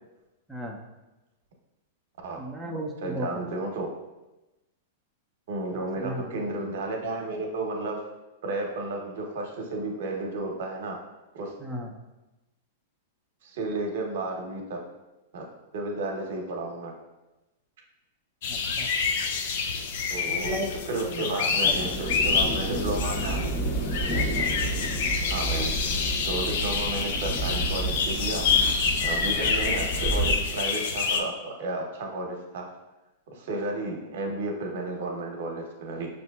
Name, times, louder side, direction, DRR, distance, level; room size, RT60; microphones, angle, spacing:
voice 1, 2.4-3.4 5.7-6.4 11.6-12.0 18.5-18.9 20.3-21.7 24.1-24.5 29.4-29.5, equal, 5° right, -2 dB, 0.5 m, -36 dB
voice 2, 3.0-3.9 5.5-8.0 8.4-11.0 11.3-11.5 13.4-14.8 15.3-15.5 15.7-16.9 20.1-20.6 20.9-23.4 25.3-25.7 26.3-28.5 29.0-32.6 33.3-36.1, right 2 dB, 70° right, 1 dB, 0.8 m, -32 dB
sound 1, 18.4-31.2, left 5 dB, 65° left, 0.4 m, -27 dB
sound 2, 21.6-30.4, right 2 dB, 30° left, 1.1 m, -30 dB
5.8 x 2.6 x 2.3 m, 1.0 s
hypercardioid pair, 120°, 0 cm